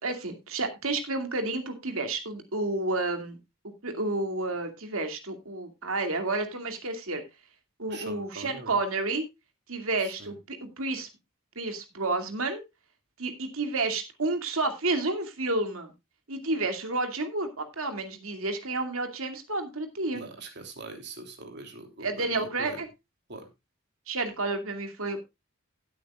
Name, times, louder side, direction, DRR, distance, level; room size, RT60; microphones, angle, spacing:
voice 1, 0.0-3.4 3.8-7.2 7.8-9.2 9.7-11.1 11.6-12.6 13.2-15.9 16.3-20.2 22.0-22.9 24.1-25.2, right 2 dB, 75° right, 6 dB, 2.5 m, -30 dB
voice 2, 7.9-8.7 10.2-10.3 20.1-22.8 23.3-23.4, right 3 dB, 55° right, 5 dB, 3.0 m, -42 dB
17.0 x 8.7 x 2.4 m, 0.23 s
head